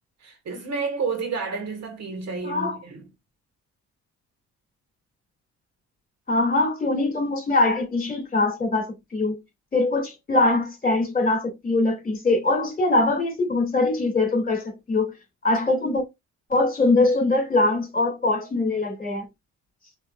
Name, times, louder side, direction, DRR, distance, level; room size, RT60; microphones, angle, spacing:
voice 1, 0.2-3.0, right 5 dB, 60° right, 1.8 m, -30 dB
voice 2, 2.4-2.8 6.3-9.4 9.7-15.1 15.4-16.0 16.5-19.3, left 2 dB, 30° left, 2.7 m, -22 dB
5.2 x 3.2 x 2.5 m
cardioid pair, 90°, 30 cm